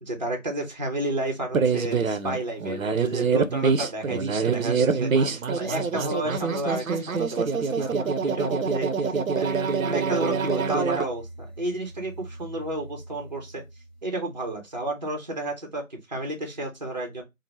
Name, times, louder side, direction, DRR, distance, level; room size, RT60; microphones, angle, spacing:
voice 1, 0.0-13.6 14.0-17.2, right 1 dB, 35° right, 0.6 m, -32 dB
sound 1, 1.5-11.1, right 5 dB, 85° right, 0.6 m, -25 dB
sound 2, 10.9-15.0, right 1 dB, 35° left, 0.7 m, -45 dB
2.7 x 2.0 x 3.2 m
figure-of-eight pair, 160°, 40 cm